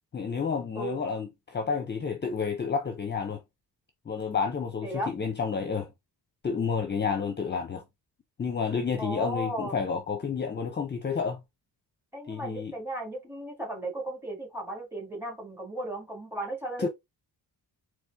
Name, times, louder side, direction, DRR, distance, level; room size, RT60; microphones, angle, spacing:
voice 1, 0.1-3.4 4.1-5.9 6.4-7.8 8.4-11.4 12.3-12.7 16.8-16.9, left 5 dB, 25° left, 0.7 m, -30 dB
voice 2, 4.8-5.1 9.0-9.8 12.1-16.9, right 1 dB, 5° right, 1.8 m, -35 dB
4.2 x 3.2 x 3.4 m
wide cardioid pair, 175°, 40 cm